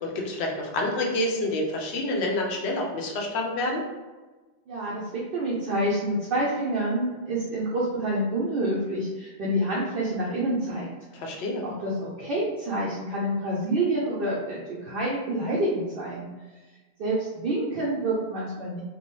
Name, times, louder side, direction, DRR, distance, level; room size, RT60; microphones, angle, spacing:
voice 1, 0.0-3.8 11.1-11.6, left 1 dB, 80° left, 0 dB, 0.8 m, -28 dB
voice 2, 4.7-10.9 11.6-16.3 17.0-18.8, right 1 dB, 65° right, -6 dB, 0.7 m, -27 dB
2.6 x 2.1 x 3.0 m, 1.3 s
omnidirectional pair, 1.1 m